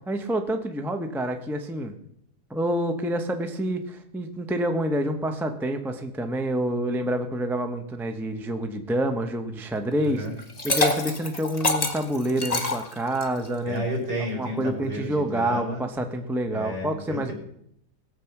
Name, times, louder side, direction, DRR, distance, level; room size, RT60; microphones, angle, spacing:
voice 1, 0.1-1.9 2.5-10.3 10.6-13.8 14.4-17.3, right 1 dB, ahead, 6 dB, 0.5 m, -27 dB
voice 2, 10.0-10.4 13.6-15.8 16.5-17.3, equal, 70° right, 0 dB, 4.1 m, -32 dB
Liquid, 10.4-13.5, left 2 dB, 25° left, 1.4 m, -26 dB
18.0 x 7.5 x 5.9 m, 0.74 s
omnidirectional pair, 1.9 m